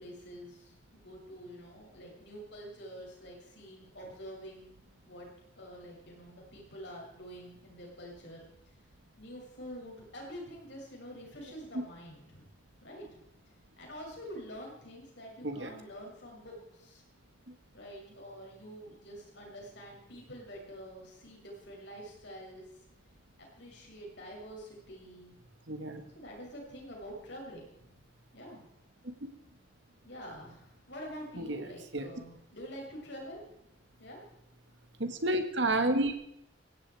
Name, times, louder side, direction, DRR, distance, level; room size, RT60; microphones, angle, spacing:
voice 1, 0.0-4.8 5.1-5.3 5.6-8.5 9.2-12.5 12.8-13.1 13.8-17.0 17.7-22.7 23.6-25.3 26.1-27.7 28.3-28.7 30.0-33.4 34.0-34.2, equal, 60° left, -1 dB, 7.0 m, -47 dB
voice 2, 25.7-26.0 31.4-31.6 31.9-32.1 35.0-36.2, right 1 dB, 65° right, 7 dB, 1.7 m, -30 dB
17.5 x 16.5 x 4.8 m, 0.76 s
head